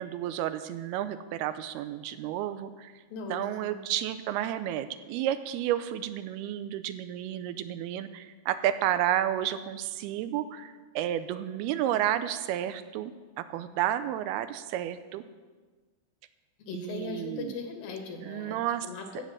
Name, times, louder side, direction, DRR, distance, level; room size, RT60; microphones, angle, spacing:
voice 1, 0.0-2.9 3.3-15.2 16.7-17.6 18.2-18.9, right 11 dB, 85° right, 11 dB, 2.5 m, -31 dB
voice 2, 3.1-3.8 16.7-18.6 18.8-19.2, left 4 dB, 65° left, 3 dB, 3.0 m, -39 dB
15.5 x 7.6 x 6.3 m, 1.4 s
omnidirectional pair, 4.6 m